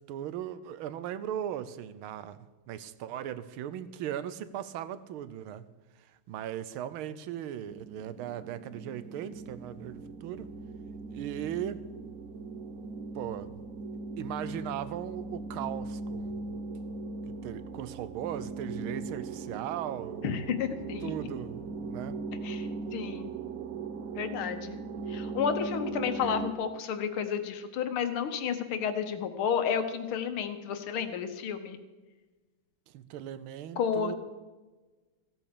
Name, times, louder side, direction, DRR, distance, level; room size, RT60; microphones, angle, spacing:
voice 1, 0.1-2.4 2.7-5.6 6.3-10.5 11.1-11.8 13.1-13.6 14.2-16.5 17.3-20.4 21.0-22.1 32.9-34.1, right 10 dB, 75° right, 15 dB, 1.5 m, -38 dB
sound 1, 7.6-26.5, right 3 dB, 55° right, 1.1 m, -39 dB
voice 2, 20.2-21.1 22.4-23.3 24.1-24.8 25.1-31.8 33.8-34.2, left 7 dB, 75° left, 9 dB, 1.9 m, -31 dB
15.5 x 8.7 x 6.7 m, 1.2 s
omnidirectional pair, 2.4 m